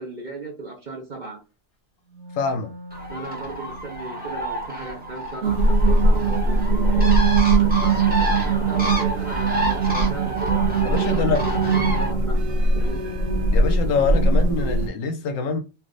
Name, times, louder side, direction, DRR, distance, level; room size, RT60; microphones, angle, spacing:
voice 1, 0.0-1.4 3.1-7.2 7.5-10.7 11.0-13.0, right 2 dB, 40° right, 0.7 m, -36 dB
Wind instrument woodwind instrument, 2.0-7.7, equal, 20° left, 1.1 m, -44 dB
voice 2, 2.3-2.7 10.8-11.4 13.5-15.6, left 5 dB, 70° left, 0.9 m, -25 dB
Bird, 2.9-12.1, right 1 dB, 10° right, 0.6 m, -29 dB
sound 1, 5.4-14.9, right 3 dB, 70° right, 1.0 m, -20 dB
3.3 x 2.5 x 2.5 m
omnidirectional pair, 1.4 m